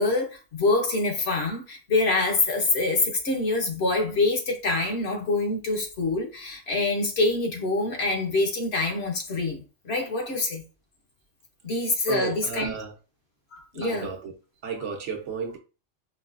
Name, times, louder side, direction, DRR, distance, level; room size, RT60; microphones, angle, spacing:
voice 1, 0.0-10.6 11.6-12.7 13.5-14.1, left 3 dB, 60° left, 1.0 m, -25 dB
voice 2, 12.1-12.9 13.8-14.3 14.6-15.6, right 5 dB, 70° right, 1.1 m, -33 dB
4.7 x 2.2 x 2.4 m
omnidirectional pair, 1.3 m